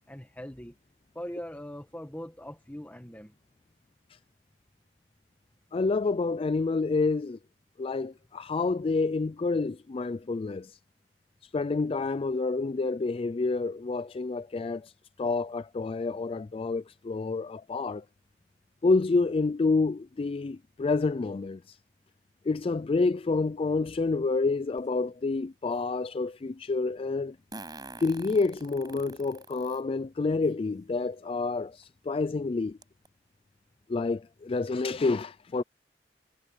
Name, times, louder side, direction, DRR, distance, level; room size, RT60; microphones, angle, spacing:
voice 1, 0.1-0.8 1.2-3.3, equal, 10° left, 1.6 m, -41 dB
voice 2, 5.7-7.4 7.8-10.8 11.5-14.9 15.2-18.0 18.8-21.8 22.4-27.4 28.0-32.8 33.9-35.6, left 3 dB, 30° left, 0.4 m, -28 dB
Fart, 24.8-24.9 27.5-29.8 30.4-30.5 31.8-31.9 32.3-32.4 32.8-33.1, right 3 dB, 25° right, 6.0 m, -45 dB
head